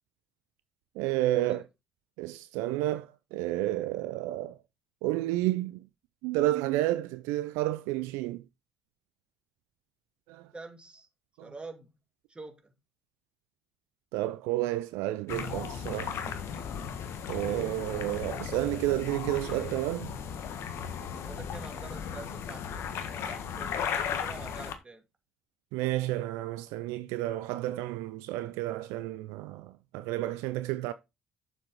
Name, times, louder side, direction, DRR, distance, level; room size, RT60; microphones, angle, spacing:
voice 1, 1.0-1.6 2.2-4.6 5.0-5.8 6.2-8.4 10.3-10.5 14.1-16.3 17.3-20.1 25.7-30.9, right 16 dB, 70° right, 0.5 m, -31 dB
voice 2, 10.5-11.1 11.4-11.9 12.3-12.7 21.2-25.1, right 3 dB, 20° right, 2.5 m, -46 dB
sound 1, 15.3-24.7, left 7 dB, 60° left, 1.5 m, -36 dB
7.8 x 7.1 x 4.0 m
hypercardioid pair, 50°, 5 cm